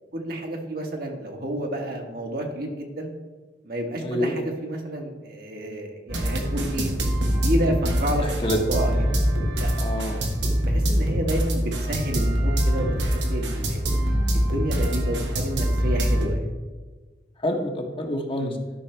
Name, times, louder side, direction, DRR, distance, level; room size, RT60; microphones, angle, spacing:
voice 1, 0.1-3.1 3.6-6.9 7.3-9.1 9.5-9.7 10.6-13.8 14.3-16.4 18.4-18.5, right 1 dB, 60° right, 1 dB, 1.5 m, -30 dB
voice 2, 4.0-4.3 8.2-8.6 9.8-10.2 10.8-10.9 17.4-18.5, equal, 30° left, 3 dB, 1.0 m, -27 dB
sound 1, 6.1-16.3, equal, 90° right, 1.4 m, -24 dB
12.5 x 5.7 x 3.3 m, 1.3 s
head